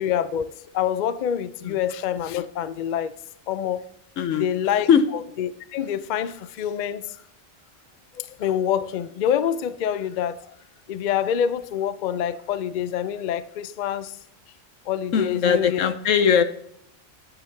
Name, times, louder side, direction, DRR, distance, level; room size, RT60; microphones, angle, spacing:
voice 1, 0.0-3.1 3.5-3.8 4.4-4.9 5.4-7.1 8.2-10.4 10.9-14.2 14.9-15.8, left 9 dB, 60° left, 0.5 m, -26 dB
voice 2, 4.2-4.5 4.9-5.0 15.1-16.4, left 7 dB, 85° left, 1.1 m, -20 dB
9.0 x 8.8 x 3.4 m
omnidirectional pair, 1.3 m